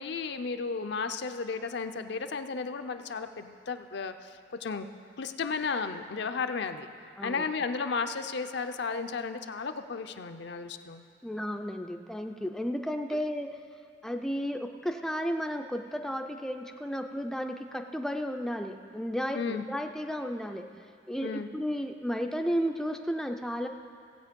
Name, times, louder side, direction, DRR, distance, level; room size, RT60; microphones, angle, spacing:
voice 1, 0.0-4.9 5.2-6.9 7.2-11.0 19.3-19.7 21.2-21.5, left 5 dB, 60° left, 8 dB, 0.5 m, -34 dB
voice 2, 11.2-13.6 14.0-20.6 21.1-23.7, equal, ahead, 4 dB, 0.4 m, -33 dB
16.5 x 8.1 x 5.2 m, 2.3 s
head